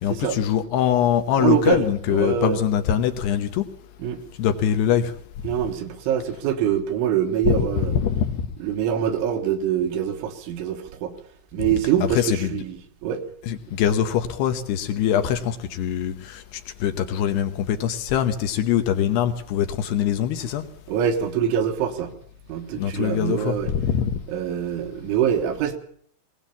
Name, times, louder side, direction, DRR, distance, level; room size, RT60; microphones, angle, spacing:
voice 1, 0.0-3.7 4.4-5.1 7.5-8.4 12.0-12.5 13.4-20.6 22.8-24.2, left 9 dB, 70° left, 2.8 m, -23 dB
voice 2, 1.4-1.8 2.1-2.6 4.0-4.2 5.4-7.9 8.6-11.1 11.5-12.8 13.0-13.2 20.9-22.1 22.5-23.7 24.3-25.8, right 9 dB, 85° right, 4.0 m, -24 dB
20.5 x 18.5 x 7.2 m
omnidirectional pair, 5.4 m